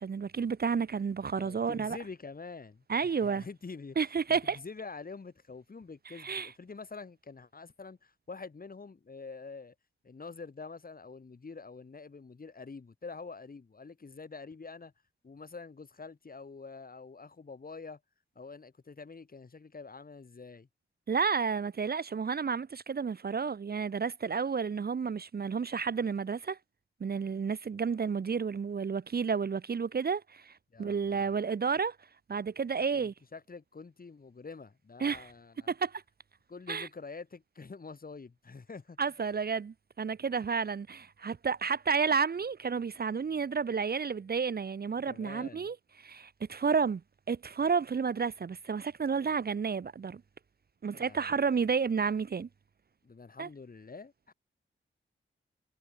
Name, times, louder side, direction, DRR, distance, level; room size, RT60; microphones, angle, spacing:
voice 1, 0.0-2.0 2.9-3.4 4.0-4.6 6.2-6.5 21.1-26.6 27.0-30.5 30.8-32.0 32.3-33.1 35.0-35.3 35.7-36.0 36.7-36.9 39.0-47.0 47.3-50.2 50.8-52.5 53.4-53.5, right 5 dB, 50° right, 0.9 m, -31 dB
voice 2, 1.3-9.7 10.0-14.9 15.2-18.0 18.3-20.7 30.7-31.3 32.8-35.7 36.5-39.0 45.1-45.7 50.9-51.4 53.0-54.3, left 4 dB, 45° left, 4.6 m, -46 dB
wide cardioid pair, 85°, 21 cm